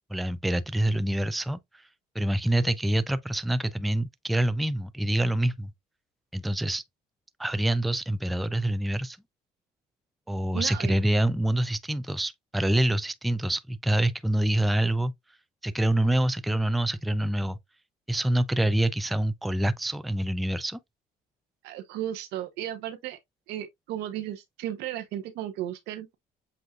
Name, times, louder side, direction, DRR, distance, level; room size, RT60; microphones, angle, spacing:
voice 1, 0.1-1.8 2.1-5.7 6.3-6.8 7.4-9.2 10.3-15.1 15.6-17.6 18.1-20.8, right 1 dB, ahead, 0.3 m, -26 dB
voice 2, 10.5-10.9 21.6-23.2 23.5-26.2, right 12 dB, 90° right, 1.0 m, -35 dB
7.7 x 2.7 x 2.3 m
cardioid pair, 110°, 17 cm